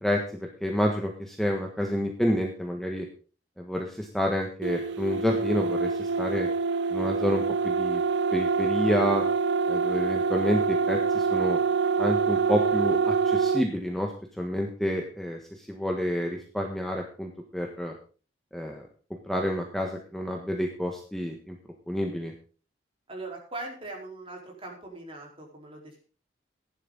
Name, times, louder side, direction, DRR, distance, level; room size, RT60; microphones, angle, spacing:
voice 1, 0.0-3.1 3.6-6.5 6.9-8.0 8.3-9.2 9.7-11.6 12.0-14.1 14.4-17.9 18.5-18.9 19.3-21.5 21.9-22.3, equal, ahead, 1 dB, 1.5 m, -29 dB
sound 1, 4.6-13.7, right 5 dB, 60° right, 0.6 m, -26 dB
voice 2, 23.1-26.0, right 2 dB, 30° right, 0 dB, 4.5 m, -40 dB
15.0 x 11.0 x 4.1 m, 0.37 s
head